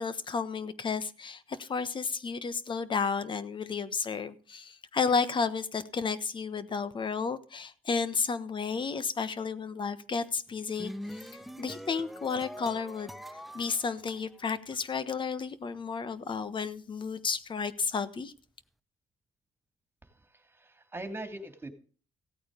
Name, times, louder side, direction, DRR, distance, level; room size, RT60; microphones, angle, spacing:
voice 1, 0.0-11.3 11.6-13.1 13.5-18.3, left 5 dB, 40° left, 14 dB, 1.3 m, -32 dB
sound 1, 10.5-14.8, equal, ahead, 0.7 m, -44 dB
voice 2, 20.0-21.7, right 1 dB, 20° right, 7 dB, 2.8 m, -42 dB
16.5 x 8.7 x 5.2 m, 0.41 s
cardioid pair, 90°, 12 cm